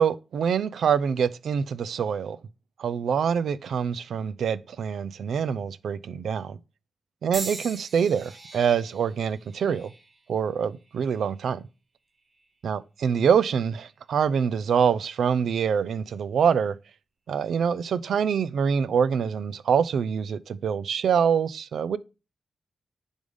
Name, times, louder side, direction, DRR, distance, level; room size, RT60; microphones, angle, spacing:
voice 1, 0.0-2.4 2.8-6.6 7.2-9.9 10.3-11.7 12.6-16.8 17.3-22.0, right 7 dB, 85° right, 0.5 m, -25 dB
sound 1, 7.3-11.5 12.2-12.6 13.6-13.8, right 3 dB, 40° right, 4.2 m, -41 dB
10.0 x 3.6 x 5.3 m
cardioid pair, 70°, 0 cm